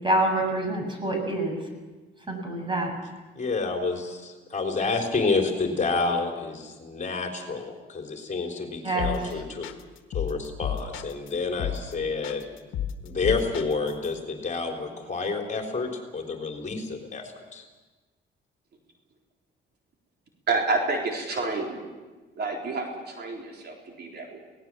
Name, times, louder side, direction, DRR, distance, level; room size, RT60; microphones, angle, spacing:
voice 1, 0.0-1.7 2.3-2.9 8.8-9.4, right 1 dB, 25° right, 3 dB, 7.2 m, -27 dB
voice 2, 3.4-9.7 10.1-12.5 13.0-17.6, left 4 dB, 35° left, 2 dB, 3.7 m, -29 dB
sound 1, 9.0-9.3 9.6-11.3 11.6-11.9 12.2-14.1, left 9 dB, 80° left, 1.5 m, -32 dB
voice 3, 20.5-21.8 22.4-24.4, right 3 dB, 55° right, 1 dB, 3.9 m, -29 dB
24.0 x 18.5 x 7.5 m, 1.3 s
cardioid pair, 90°, 20 cm